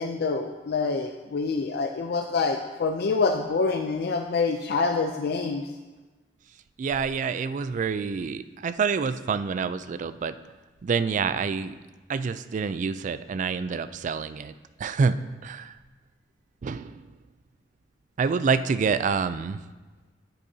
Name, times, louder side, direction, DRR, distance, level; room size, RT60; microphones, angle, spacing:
voice 1, 0.0-5.6, left 4 dB, 60° left, 5 dB, 0.4 m, -26 dB
voice 2, 6.8-10.4 10.8-11.8 12.1-14.5 14.8-15.2 15.4-15.8 16.6-17.1 18.2-19.6, right 5 dB, 45° right, 13 dB, 0.3 m, -27 dB
8.6 x 8.3 x 2.7 m, 1.2 s
head